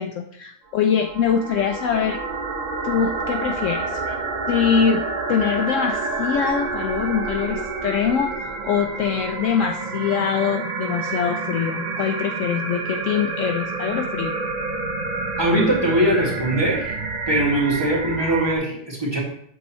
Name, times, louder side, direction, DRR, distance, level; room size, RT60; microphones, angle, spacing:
voice 1, 0.0-2.2 2.8-4.2 4.5-5.0 5.3-14.3, left 7 dB, 70° left, 4 dB, 0.8 m, -23 dB
sound 1, 0.7-18.6, right 3 dB, 40° right, 0.6 m, -28 dB
voice 2, 15.4-16.9 17.3-19.2, right 1 dB, 15° right, -5 dB, 2.1 m, -21 dB
8.1 x 6.2 x 3.0 m, 0.65 s
omnidirectional pair, 1.5 m